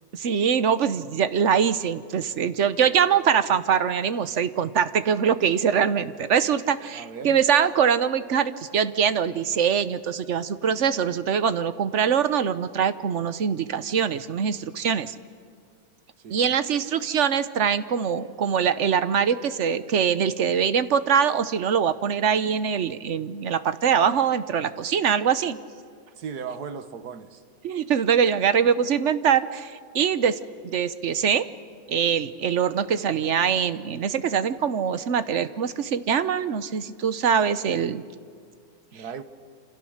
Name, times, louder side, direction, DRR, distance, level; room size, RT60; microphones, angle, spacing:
voice 1, 0.1-15.1 16.3-25.6 27.6-30.4 30.6-31.5 31.9-38.0, right 7 dB, 55° right, 13 dB, 1.1 m, -23 dB
voice 2, 6.9-7.4 16.2-16.5 26.2-27.4 38.9-39.2, right 6 dB, 75° right, 10 dB, 1.8 m, -37 dB
28.0 x 26.5 x 6.6 m, 2.2 s
omnidirectional pair, 1.7 m